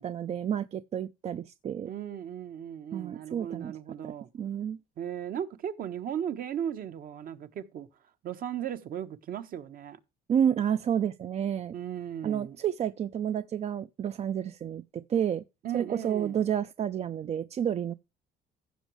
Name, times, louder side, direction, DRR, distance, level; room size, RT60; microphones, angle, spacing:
voice 1, 0.0-1.9 2.9-3.7 4.3-4.8 10.3-11.7 12.2-15.4 15.7-17.9, right 9 dB, 40° right, 0.5 m, -30 dB
voice 2, 1.8-4.3 5.0-7.9 8.2-10.0 11.7-12.6 15.6-16.4, right 9 dB, 60° right, 1.2 m, -36 dB
15.0 x 6.2 x 3.1 m
cardioid pair, 110°, 17 cm